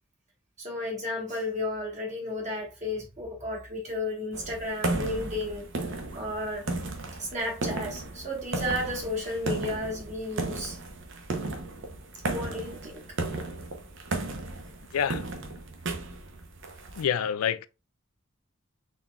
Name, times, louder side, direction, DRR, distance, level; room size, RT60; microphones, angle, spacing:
voice 1, 0.6-6.7 7.2-10.8 12.3-13.0, left 1 dB, 35° right, 1.2 m, -33 dB
sound 1, 4.3-17.0, right 2 dB, 60° right, 0.7 m, -35 dB
voice 2, 14.9-15.3 17.0-17.7, left 8 dB, 80° left, 0.3 m, -27 dB
4.1 x 3.6 x 2.3 m
head